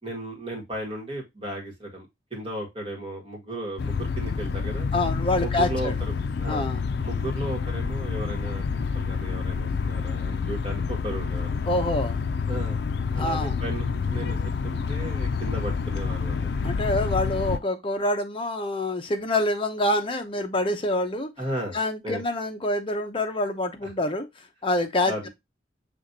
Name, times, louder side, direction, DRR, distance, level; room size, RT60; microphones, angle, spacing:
voice 1, 0.0-4.9 5.4-5.9 6.4-6.7 7.0-11.5 12.5-12.8 13.1-14.4 14.6-16.5 21.4-21.8 22.0-22.2 23.8-23.9 25.1-25.3, right 1 dB, 30° right, 1.8 m, -35 dB
sound 1, 3.8-17.6, left 5 dB, 65° left, 0.4 m, -28 dB
voice 2, 4.9-5.9 6.5-6.8 11.7-12.2 13.2-13.6 16.6-21.3 21.7-24.3 24.6-25.3, left 1 dB, 30° left, 0.8 m, -26 dB
6.3 x 3.0 x 2.7 m
head